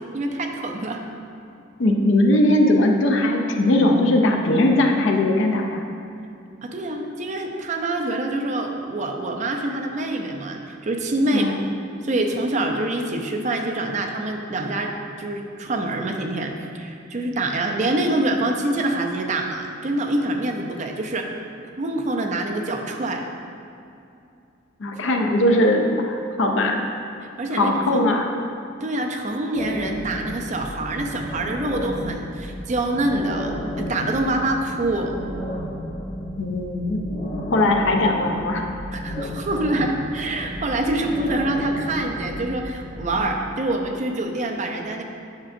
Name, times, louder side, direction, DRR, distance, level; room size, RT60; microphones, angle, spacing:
voice 1, 0.1-1.0 6.6-11.5 12.0-21.3 21.8-23.3 27.2-28.1 28.8-35.1 38.9-45.0, right 2 dB, 40° right, 2 dB, 0.5 m, -25 dB
voice 2, 1.8-5.8 11.3-11.6 24.8-26.8 27.5-28.3 36.4-37.0 37.5-38.6, left 1 dB, 70° left, 2 dB, 0.5 m, -19 dB
sound 1, 29.5-43.2, equal, 35° left, 0.9 m, -33 dB
7.3 x 6.0 x 2.6 m, 2.6 s
head